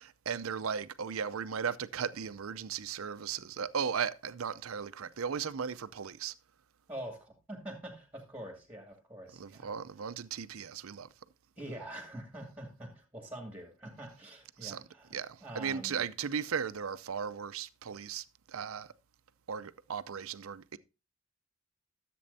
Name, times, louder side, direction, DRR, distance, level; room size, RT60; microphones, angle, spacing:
voice 1, 0.0-6.3 9.4-11.1 14.6-14.8 15.1-18.9 19.5-20.8, right 7 dB, 90° right, 0.6 m, -36 dB
voice 2, 6.9-9.7 11.6-16.0, right 1 dB, 10° right, 2.2 m, -45 dB
14.0 x 7.7 x 2.7 m
head